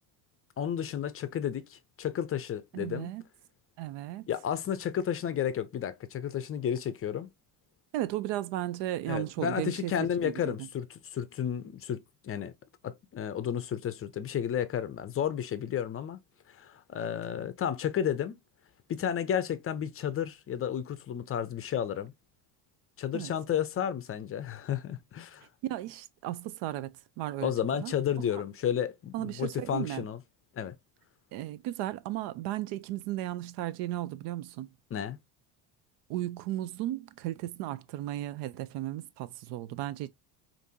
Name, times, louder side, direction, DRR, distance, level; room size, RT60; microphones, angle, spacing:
voice 1, 0.6-3.1 4.3-7.3 9.1-12.5 12.8-16.2 16.5-18.4 18.9-22.1 23.0-25.5 27.4-30.2 30.6-30.7 34.9-35.2, left 9 dB, 30° left, 0.5 m, -32 dB
voice 2, 2.7-3.2 3.8-4.3 7.9-10.5 23.1-23.3 25.7-27.5 27.8-27.9 29.1-30.0 31.3-34.7 36.1-40.1, right 14 dB, 65° right, 0.6 m, -35 dB
5.0 x 2.6 x 2.7 m
supercardioid pair, 110°, 44 cm